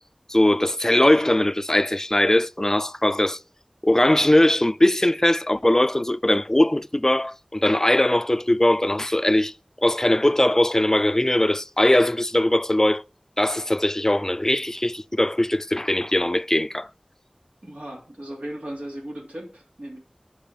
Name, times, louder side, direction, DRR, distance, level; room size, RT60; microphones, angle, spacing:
voice 1, 0.3-3.4 3.8-9.5 9.8-13.0 13.4-16.9, left 1 dB, 20° left, 0.4 m, -20 dB
voice 2, 17.6-20.0, right 1 dB, 85° right, 2.9 m, -36 dB
8.7 x 5.5 x 7.4 m
wide cardioid pair, 45°, 2 cm